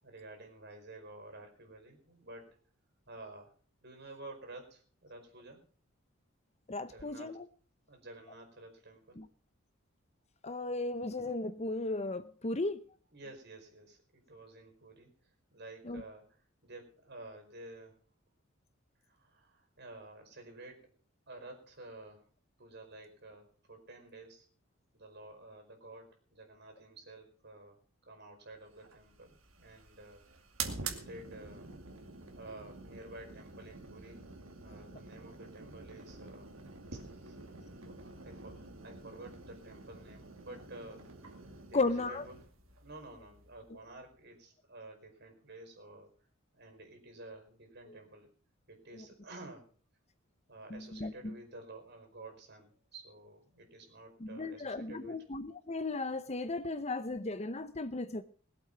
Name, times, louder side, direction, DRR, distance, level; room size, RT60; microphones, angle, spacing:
voice 1, 0.0-2.6 3.1-3.5 3.8-5.7 6.8-7.4 7.9-9.2 13.1-18.0 19.0-20.9 21.3-22.3 22.6-24.5 24.9-30.3 30.8-31.7 32.3-36.5 36.9-37.4 37.7-41.0 41.6-42.4 42.8-46.1 46.5-48.3 48.7-49.7 50.5-55.2, right 2 dB, 55° right, 5.0 m, -51 dB
voice 2, 6.7-7.4 9.2-9.3 10.4-12.8 15.9-16.0 41.7-42.2 49.0-49.1 50.7-51.3 54.2-58.2, left 2 dB, 30° left, 0.8 m, -35 dB
sound 1, 28.7-44.0, right 4 dB, 85° right, 2.4 m, -47 dB
20.5 x 8.3 x 5.9 m
head